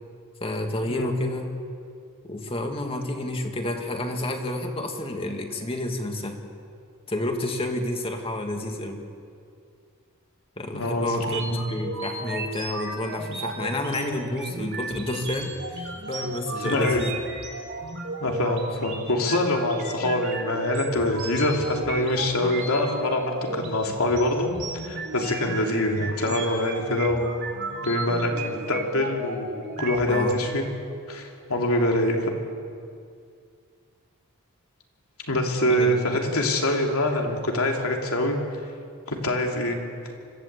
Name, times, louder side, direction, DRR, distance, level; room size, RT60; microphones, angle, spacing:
voice 1, 0.4-1.5 2.3-6.4 7.1-9.0 10.6-11.4 11.7-17.1 30.1-30.4 35.7-36.2, left 1 dB, 25° left, 4 dB, 2.1 m, -30 dB
voice 2, 10.7-11.6 16.6-17.0 18.2-24.5 24.8-27.2 27.8-29.5 29.8-30.7 31.1-32.3 35.3-38.4 39.1-39.8, left 1 dB, 80° left, 1 dB, 3.0 m, -25 dB
sound 1, 11.1-30.3, right 2 dB, 55° right, 3.7 m, -34 dB
25.5 x 15.5 x 8.3 m, 2.3 s
head